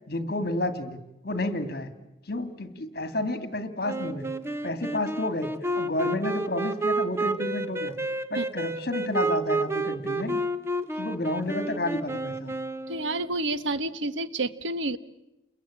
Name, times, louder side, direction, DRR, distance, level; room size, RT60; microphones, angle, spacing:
voice 1, 0.1-1.9 2.2-4.3 4.6-5.5 5.7-7.9 8.3-10.4 11.0-12.5, left 1 dB, 55° left, 10 dB, 2.2 m, -30 dB
Wind instrument woodwind instrument, 3.8-13.3, right 2 dB, 15° right, 1.0 m, -30 dB
voice 2, 12.9-15.0, right 2 dB, 85° right, 14 dB, 1.2 m, -29 dB
30.0 x 22.0 x 8.8 m, 0.93 s
head